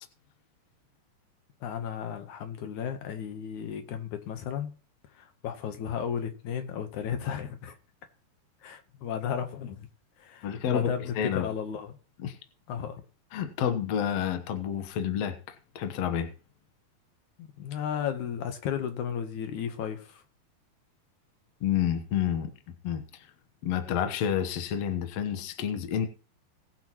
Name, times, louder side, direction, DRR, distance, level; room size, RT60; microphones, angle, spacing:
voice 1, 1.6-4.7 5.1-7.8 8.6-9.9 10.2-12.0 12.7-13.0 17.4-20.2, left 8 dB, 70° left, 1.9 m, -34 dB
voice 2, 10.4-11.5 12.2-12.3 13.3-16.3 21.6-22.5 22.8-23.0 23.6-26.1, left 9 dB, 90° left, 1.4 m, -29 dB
20.0 x 8.0 x 3.0 m
omnidirectional pair, 4.8 m